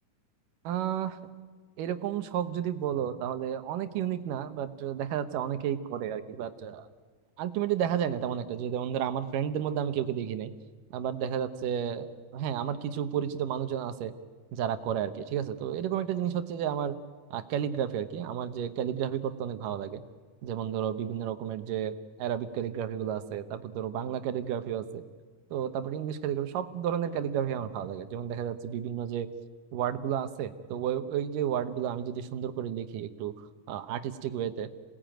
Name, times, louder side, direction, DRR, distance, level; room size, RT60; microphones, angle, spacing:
voice 1, 0.6-1.2 1.8-6.9 7.4-10.5 10.9-14.1 14.5-16.9 17.3-20.0 20.4-21.9 22.2-25.0 25.5-29.3 29.7-33.3 33.7-34.7, right 9 dB, 85° right, 10 dB, 2.7 m, -32 dB
26.5 x 18.5 x 9.0 m, 1.5 s
omnidirectional pair, 3.7 m